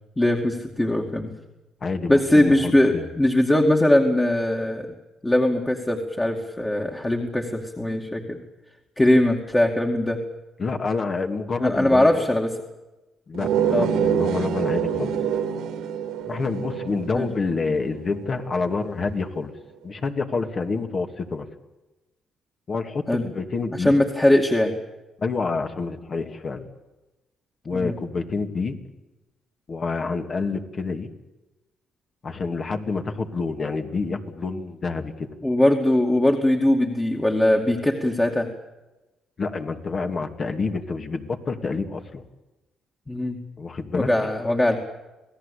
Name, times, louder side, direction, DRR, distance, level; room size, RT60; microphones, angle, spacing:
voice 1, 0.2-1.3 2.1-4.9 5.2-8.4 9.0-10.2 11.6-12.6 13.7-13.9 17.1-17.3 23.1-23.3 23.8-24.7 27.7-27.9 35.4-38.5 43.1-43.4 43.9-44.8, left 1 dB, 15° left, 1 dB, 2.4 m, -21 dB
voice 2, 1.8-3.1 10.6-12.1 13.3-15.1 16.3-19.5 19.8-21.5 22.7-24.0 25.2-26.7 27.6-28.8 29.7-31.1 32.2-35.3 39.4-42.2 43.6-44.1, left 4 dB, 45° left, 5 dB, 2.6 m, -28 dB
sound 1, 13.3-18.6, right 8 dB, 85° right, 2.8 m, -26 dB
27.5 x 18.0 x 8.6 m, 1.1 s
cardioid pair, 90°, 0 cm